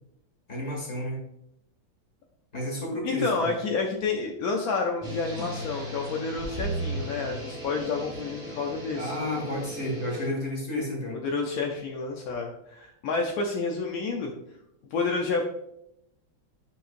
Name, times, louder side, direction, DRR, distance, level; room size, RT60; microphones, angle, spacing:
voice 1, 0.5-1.3 2.5-3.5 8.9-11.2, left 1 dB, 35° left, -2 dB, 2.1 m, -31 dB
voice 2, 3.0-9.2 11.2-14.3 14.9-15.4, left 4 dB, 65° left, 1 dB, 0.9 m, -29 dB
sound 1, 5.0-10.3, right 1 dB, 20° right, 1.1 m, -36 dB
10.5 x 3.8 x 2.6 m, 0.79 s
omnidirectional pair, 2.2 m